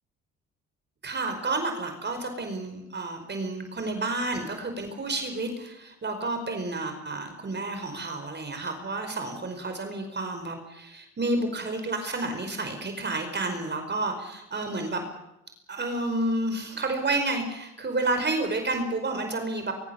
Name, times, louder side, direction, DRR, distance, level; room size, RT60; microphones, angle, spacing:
voice 1, 1.0-15.0 15.7-19.7, right 2 dB, 35° right, 6 dB, 5.0 m, -30 dB
23.5 x 22.5 x 7.2 m, 0.88 s
cardioid pair, 90°, 30 cm